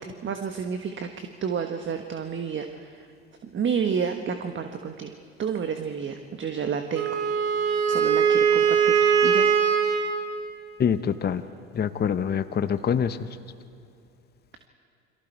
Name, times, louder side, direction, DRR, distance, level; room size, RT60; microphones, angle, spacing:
voice 1, 0.0-3.1 3.4-5.1 5.4-7.2 7.9-9.5, right 6 dB, 35° right, 6 dB, 1.4 m, -30 dB
Wind instrument woodwind instrument, 6.9-10.2, right 7 dB, 70° right, 2.4 m, -21 dB
voice 2, 10.8-11.4 11.7-13.2, left 7 dB, 30° left, 11 dB, 0.9 m, -25 dB
29.0 x 23.0 x 4.6 m, 2.5 s
hypercardioid pair, 65°, 34 cm